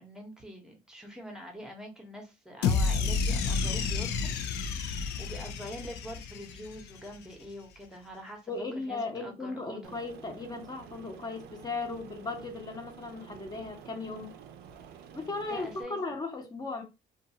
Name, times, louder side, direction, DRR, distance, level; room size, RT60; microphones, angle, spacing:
voice 1, 0.0-4.4 5.2-10.0 15.5-16.0, equal, 5° right, 0.9 m, -44 dB
sound 1, 2.6-7.0, left 5 dB, 85° left, 0.5 m, -30 dB
voice 2, 8.5-14.3 15.1-16.8, left 3 dB, 25° left, 0.9 m, -37 dB
Aircraft, 9.8-15.8, right 8 dB, 70° right, 0.5 m, -50 dB
2.5 x 2.4 x 2.7 m
cardioid pair, 110°, 17 cm